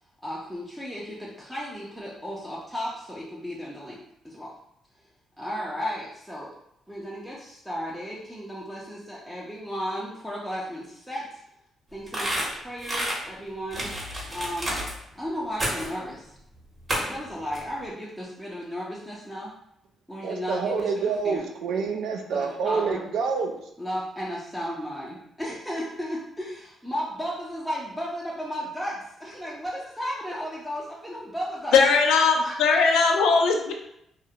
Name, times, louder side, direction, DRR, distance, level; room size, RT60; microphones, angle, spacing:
voice 1, 0.2-4.5 5.4-6.5 6.9-11.4 11.9-14.8 15.1-16.3 17.0-19.5 20.1-21.5 22.3-23.0 23.8-31.8 32.1-32.8, equal, 5° right, -6 dB, 0.5 m, -34 dB
sound 1, 12.1-13.2 13.7-14.9 15.6-16.0 16.9-17.2 17.5-17.6, equal, 30° right, 0.8 m, -29 dB
voice 2, 20.2-23.5, right 5 dB, 80° right, 3 dB, 0.3 m, -27 dB
voice 3, 31.7-33.7, left 4 dB, 90° left, 3 dB, 0.3 m, -19 dB
2.3 x 2.0 x 2.7 m, 0.78 s
cardioid pair, 90°, 0 cm